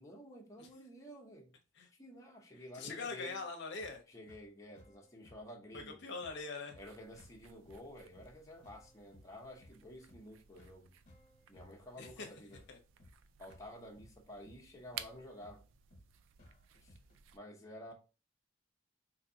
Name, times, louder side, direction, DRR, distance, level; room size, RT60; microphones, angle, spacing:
voice 1, 0.0-1.5 2.0-3.4 4.1-6.0 6.8-10.9 11.5-12.6 13.4-15.6 16.8-17.0 17.3-17.9, left 1 dB, 15° left, 0.7 m, -51 dB
voice 2, 2.7-4.0 5.7-6.8 12.0-12.3 12.7-12.8, left 4 dB, 65° left, 0.6 m, -43 dB
sound 1, 3.8-17.2, left 1 dB, 45° left, 1.0 m, -63 dB
sound 2, 6.8-17.4, right 9 dB, 85° right, 0.3 m, -56 dB
3.9 x 2.6 x 2.7 m
head